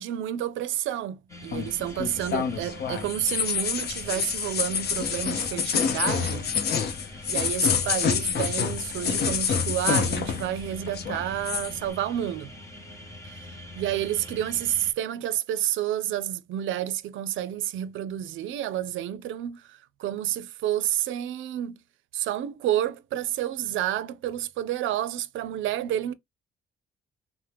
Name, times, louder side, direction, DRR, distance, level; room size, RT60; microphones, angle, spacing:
voice 1, 0.0-6.5 7.3-12.5 13.3-13.5 13.8-21.8 22.1-26.1, right 12 dB, 75° right, 0.4 m, -30 dB
sound 1, 1.3-14.9, left 1 dB, 15° left, 0.9 m, -43 dB
sound 2, 1.5-10.6 10.9-11.7, left 6 dB, 55° left, 0.6 m, -27 dB
2.8 x 2.1 x 3.2 m
cardioid pair, 90°, 20 cm